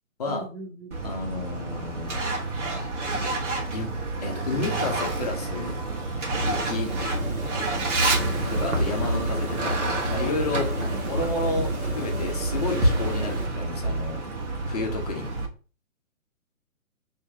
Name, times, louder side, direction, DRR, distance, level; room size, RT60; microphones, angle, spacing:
voice 1, 0.3-1.0 6.9-7.1 9.1-9.6 10.6-11.0, right 1 dB, 15° right, -7 dB, 0.4 m, -39 dB
Truck, 0.9-15.5, right 3 dB, 55° right, 1.3 m, -29 dB
voice 2, 1.0-2.2 3.1-3.2 3.7-3.9 4.2-5.8 6.4-6.9 8.5-9.7 10.1-10.7 11.0-14.2 14.7-15.3, left 3 dB, 30° left, 1 dB, 0.8 m, -31 dB
sound 1, 6.3-13.5, equal, 75° right, 1.4 m, -29 dB
3.1 x 2.8 x 3.6 m, 0.37 s
figure-of-eight pair, 135°, 42 cm